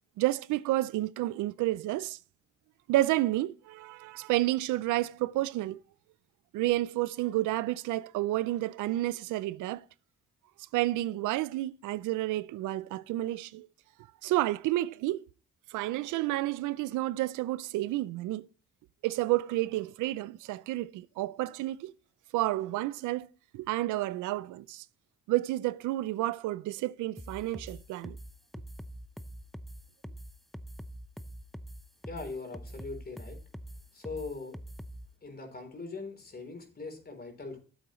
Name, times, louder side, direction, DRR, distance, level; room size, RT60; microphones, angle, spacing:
voice 1, 0.2-2.2 2.9-5.8 6.5-9.8 10.7-13.7 14.2-15.3 15.7-18.5 19.0-21.9 22.3-23.3 23.5-24.8 25.3-28.2, right 16 dB, 90° right, 0.5 m, -30 dB
sound 1, 27.2-35.1, equal, ahead, 0.6 m, -44 dB
voice 2, 32.1-33.4 33.9-34.6 35.2-37.6, left 3 dB, 30° left, 3.8 m, -41 dB
12.5 x 7.9 x 3.1 m
cardioid pair, 90°, 30 cm